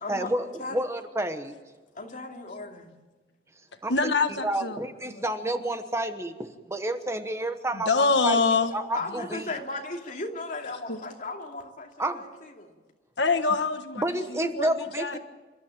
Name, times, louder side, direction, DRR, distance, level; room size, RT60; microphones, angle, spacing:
voice 1, 0.1-1.5 3.8-4.1 4.4-8.4 8.7-9.5 12.0-12.2 14.0-15.2, right 1 dB, 15° right, 8 dB, 1.2 m, -30 dB
voice 2, 1.9-2.9 8.9-12.7, left 2 dB, 45° left, 1 dB, 2.8 m, -36 dB
voice 3, 3.9-4.8 5.1-5.2 7.7-8.7 10.9-11.0 13.2-14.0 14.3-15.2, left 4 dB, 85° left, 7 dB, 1.5 m, -25 dB
28.0 x 13.0 x 9.0 m, 1.3 s
head